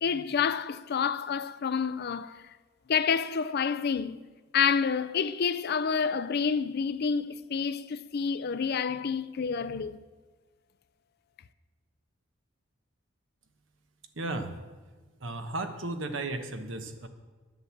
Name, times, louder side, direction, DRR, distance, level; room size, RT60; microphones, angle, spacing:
voice 1, 0.0-2.5 2.9-4.2 4.5-10.0, left 6 dB, 55° left, 0.4 m, -28 dB
voice 2, 14.2-14.5 15.2-17.1, right 2 dB, 70° right, 1.2 m, -34 dB
11.0 x 7.8 x 7.4 m
head